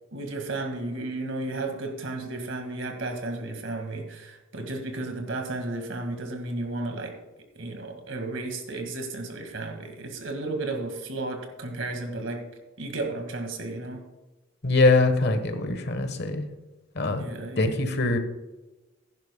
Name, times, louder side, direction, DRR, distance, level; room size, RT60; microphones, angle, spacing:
voice 1, 0.1-7.1 7.5-12.5 12.8-14.1 17.1-17.7, right 2 dB, 75° right, 4 dB, 1.9 m, -33 dB
voice 2, 14.6-16.5 16.9-17.3 17.6-18.2, left 3 dB, 60° left, 8 dB, 1.2 m, -23 dB
16.0 x 10.5 x 2.2 m, 1.1 s
head